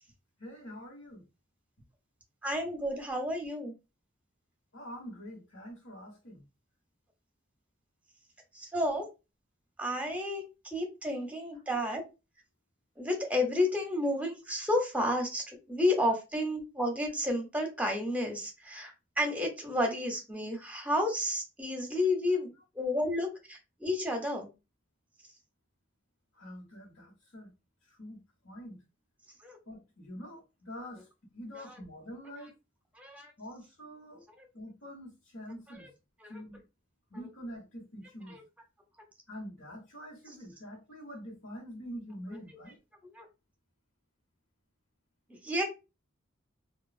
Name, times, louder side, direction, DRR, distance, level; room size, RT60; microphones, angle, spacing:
voice 1, 0.4-1.2 4.7-6.4 26.3-27.5 27.9-28.8 29.7-31.1 31.3-32.5 33.4-34.3 34.5-35.9 36.3-36.6 37.1-38.4 39.3-42.8, equal, 85° left, 1.2 m, -45 dB
voice 2, 2.4-3.7 8.5-9.1 9.8-12.0 13.0-24.5 29.4-29.6 31.5-31.7 33.0-33.3 34.4-34.5 35.8-35.9 36.2-36.4 38.3-38.4 43.1-43.3 45.3-45.6, left 1 dB, 5° right, 0.7 m, -31 dB
3.0 x 2.3 x 2.3 m
head